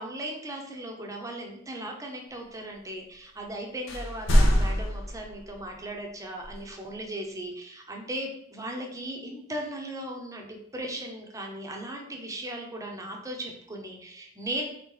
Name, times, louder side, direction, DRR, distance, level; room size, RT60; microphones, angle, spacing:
voice 1, 0.0-14.7, right 1 dB, 15° right, 1 dB, 0.7 m, -37 dB
sound 1, 3.9-5.5 6.4-6.5, equal, 70° left, 0.6 m, -23 dB
3.5 x 3.0 x 3.8 m, 0.70 s
head